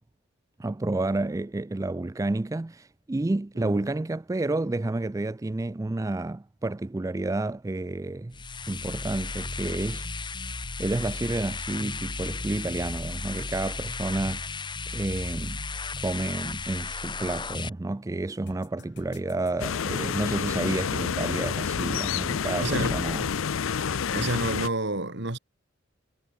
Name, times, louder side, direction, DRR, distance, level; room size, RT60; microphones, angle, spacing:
voice 1, 0.6-8.4 8.7-14.5 14.9-15.6 16.0-23.3, right 2 dB, 15° right, 0.4 m, -30 dB
sound 1, 8.3-17.7, left 3 dB, 25° left, 1.7 m, -34 dB
sound 2, 18.5-23.7, left 4 dB, 60° left, 2.5 m, -51 dB
sound 3, 19.6-24.7, left 7 dB, 85° left, 0.5 m, -28 dB
voice 2, 22.6-23.0 23.8-25.4, right 2 dB, 60° right, 3.0 m, -30 dB
head